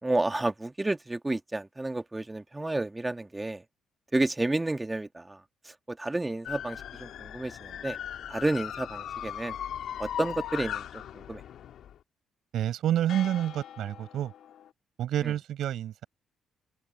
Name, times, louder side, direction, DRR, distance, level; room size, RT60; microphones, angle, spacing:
voice 1, 0.0-3.6 4.1-5.4 5.6-8.0 8.3-9.5 10.0-10.9 11.1-11.4 15.2-15.3, right 2 dB, 15° right, 1.4 m, -31 dB
sound 1, 6.4-12.0 13.1-14.7, left 10 dB, 70° left, 2.6 m, -39 dB
voice 2, 12.5-14.3 15.0-16.1, right 11 dB, 75° right, 6.4 m, -28 dB
cardioid pair, 90°, 0 cm